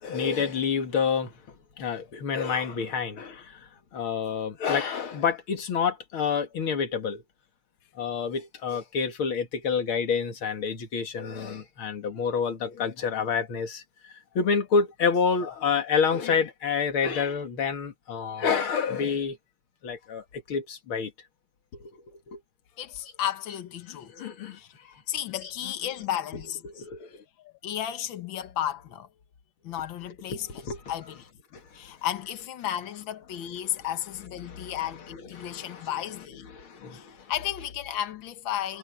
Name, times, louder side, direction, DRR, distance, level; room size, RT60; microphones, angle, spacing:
voice 1, 0.0-7.2 8.0-19.4 19.8-21.1 21.8-22.4 23.9-24.6 24.9-25.0 25.3-26.1 26.6-27.2 30.2-31.2 31.5-31.6 32.2-32.3 33.4-37.5, left 6 dB, 45° left, 2.2 m, -29 dB
voice 2, 22.8-24.1 24.5-24.7 25.1-26.6 27.4-29.1 29.6-31.2 31.7-36.5 36.9-38.8, left 11 dB, 90° left, 1.0 m, -33 dB
omnidirectional pair, 4.2 m